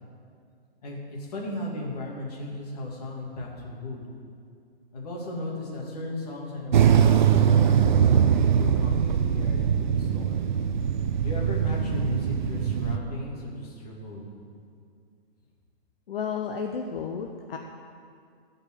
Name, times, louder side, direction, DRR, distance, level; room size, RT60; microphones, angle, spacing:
voice 1, 0.8-4.0 4.9-10.4 11.2-14.3, left 1 dB, 35° left, -2 dB, 2.4 m, -36 dB
sound 1, 6.7-13.0, right 8 dB, 50° right, 0.5 m, -22 dB
voice 2, 16.1-17.6, left 6 dB, 60° left, 3 dB, 0.9 m, -32 dB
14.5 x 5.4 x 8.0 m, 2.3 s
hypercardioid pair, 175°, 32 cm